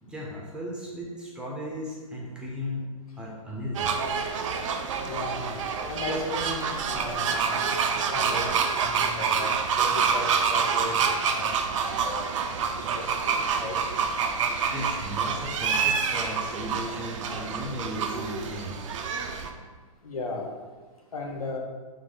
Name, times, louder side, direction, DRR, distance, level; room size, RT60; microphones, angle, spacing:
voice 1, 0.0-2.9 3.2-3.9 14.7-18.8, equal, 5° right, -4 dB, 0.8 m, -36 dB
sound 1, 3.7-19.5, right 6 dB, 60° right, 0.5 m, -27 dB
voice 2, 5.0-7.7 8.1-8.5 8.7-10.9 11.2-12.2 12.8-13.8 20.0-20.5 21.1-21.6, left 2 dB, 85° left, 0 dB, 0.9 m, -36 dB
4.8 x 2.8 x 3.8 m, 1.4 s
hypercardioid pair, 125°, 18 cm